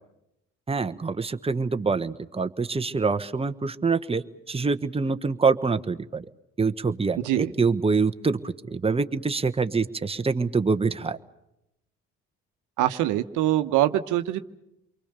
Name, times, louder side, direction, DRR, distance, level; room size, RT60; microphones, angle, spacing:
voice 1, 0.7-6.2 6.6-11.2, right 4 dB, 20° right, 9 dB, 1.2 m, -25 dB
voice 2, 12.8-14.4, right 14 dB, 75° right, 9 dB, 1.1 m, -23 dB
28.5 x 23.5 x 6.8 m, 0.83 s
supercardioid pair, 65°, 31 cm